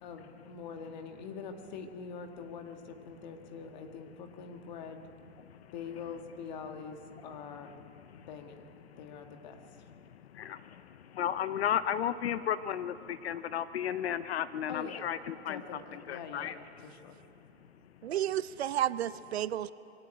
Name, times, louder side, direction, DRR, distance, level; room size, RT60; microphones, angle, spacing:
voice 1, 0.0-5.1 5.7-7.7 8.1-8.7 9.0-9.6 14.7-15.1 15.5-17.1, left 6 dB, 40° left, 5 dB, 1.9 m, -44 dB
voice 2, 11.2-12.9 13.2-15.6 15.9-16.5, left 9 dB, 60° left, 14 dB, 0.7 m, -33 dB
voice 3, 18.0-19.7, right 11 dB, 60° right, 16 dB, 0.7 m, -31 dB
22.5 x 17.5 x 9.0 m, 2.8 s
hypercardioid pair, 165°, 36 cm